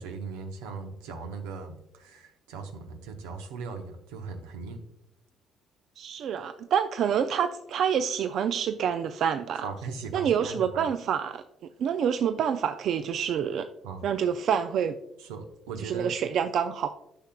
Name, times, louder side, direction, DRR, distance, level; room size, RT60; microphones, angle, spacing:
voice 1, 0.0-4.8 9.6-10.9 13.8-14.0 15.2-16.2, right 4 dB, 90° right, 6 dB, 0.7 m, -39 dB
voice 2, 6.0-9.6 10.1-11.4 11.8-13.7 14.0-15.0 15.8-16.9, right 8 dB, 65° right, 9 dB, 0.3 m, -27 dB
10.0 x 6.0 x 2.2 m, 0.83 s
supercardioid pair, 65°, 0 cm